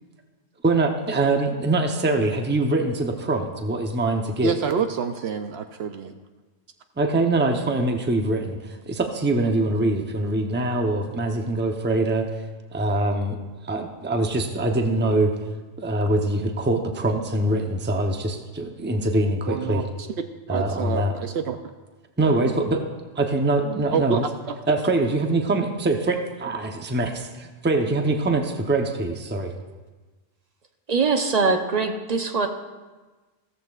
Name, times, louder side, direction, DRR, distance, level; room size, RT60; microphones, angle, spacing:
voice 1, 0.6-4.5 7.0-12.3 12.7-13.4 13.6-15.3 15.8-19.8 20.5-21.1 22.2-22.8 23.2-24.2 24.7-29.5, right 2 dB, 10° right, 4 dB, 0.7 m, -23 dB
voice 2, 4.4-6.1 19.5-20.1 20.5-21.6 22.2-22.5 23.9-24.2 24.5-24.6, right 6 dB, 65° right, 7 dB, 0.8 m, -27 dB
voice 3, 30.9-32.5, right 4 dB, 40° right, 5 dB, 0.9 m, -22 dB
15.5 x 14.0 x 2.4 m, 1.3 s
omnidirectional pair, 1.2 m